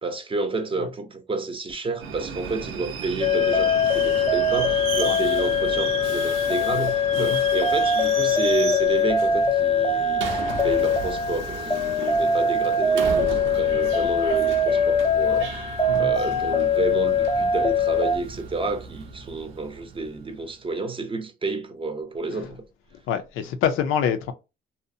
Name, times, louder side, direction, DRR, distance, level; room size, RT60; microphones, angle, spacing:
voice 1, 0.0-15.6 16.0-22.6, right 3 dB, 25° right, 0.6 m, -30 dB
Subway metro underground, 2.0-20.4, right 6 dB, 80° right, 0.6 m, -35 dB
sound 1, 3.2-18.2, left 3 dB, 20° left, 0.5 m, -22 dB
voice 2, 23.1-24.3, left 8 dB, 90° left, 0.5 m, -26 dB
2.7 x 2.0 x 2.6 m
cardioid pair, 90°, 20 cm